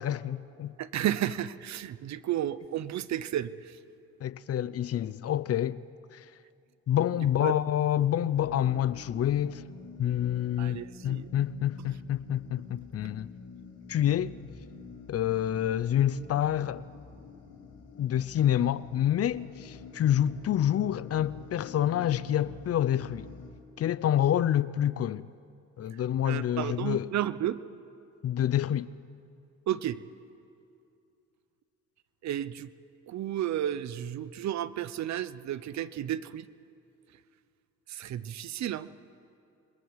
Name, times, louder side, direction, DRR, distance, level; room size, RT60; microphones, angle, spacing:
voice 1, 0.0-0.8 4.2-5.8 6.1-6.2 6.9-9.6 10.0-13.3 13.9-14.3 15.1-16.8 18.0-23.3 23.8-25.3 25.8-27.1 28.2-28.9, left 11 dB, 50° left, 0.6 m, -27 dB
voice 2, 0.8-3.8 7.4-7.5 10.6-11.3 26.2-27.6 29.7-30.0 32.2-32.7 33.1-36.5 37.9-38.9, right 11 dB, 65° right, 0.7 m, -32 dB
sound 1, 8.3-23.5, left 5 dB, 85° left, 3.0 m, -48 dB
26.5 x 22.0 x 4.8 m
cardioid pair, 90°, 30 cm